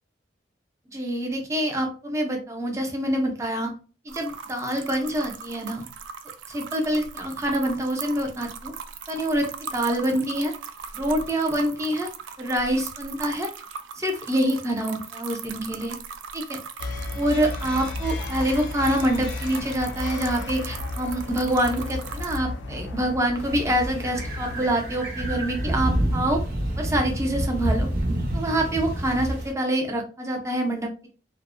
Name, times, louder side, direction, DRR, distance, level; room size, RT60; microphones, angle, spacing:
voice 1, 0.9-3.7 4.1-5.8 6.5-8.7 9.1-10.5 10.9-12.1 12.4-13.5 14.0-16.0 16.3-16.6 17.1-26.4 26.8-27.9 28.3-31.1, right 1 dB, 15° right, 2 dB, 0.5 m, -26 dB
sound 1, 4.1-22.4, right 6 dB, 80° right, 0.3 m, -39 dB
sound 2, 16.8-24.7, left 2 dB, 85° left, 0.4 m, -33 dB
sound 3, 23.4-29.5, right 1 dB, 60° right, 0.7 m, -28 dB
2.5 x 2.1 x 2.5 m, 0.35 s
head